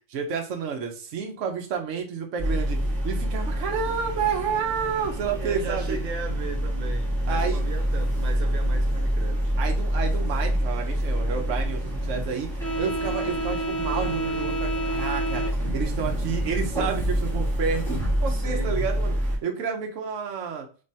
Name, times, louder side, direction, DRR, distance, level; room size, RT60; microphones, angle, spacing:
voice 1, 0.1-6.0 7.3-7.7 9.6-15.4 15.7-17.8 18.2-20.7, right 6 dB, 65° right, 1.1 m, -30 dB
sound 1, 2.4-19.4, equal, ahead, 1.8 m, -26 dB
voice 2, 5.0-9.5 18.3-18.9, right 4 dB, 85° right, 1.2 m, -37 dB
3.3 x 3.2 x 2.7 m
omnidirectional pair, 1.4 m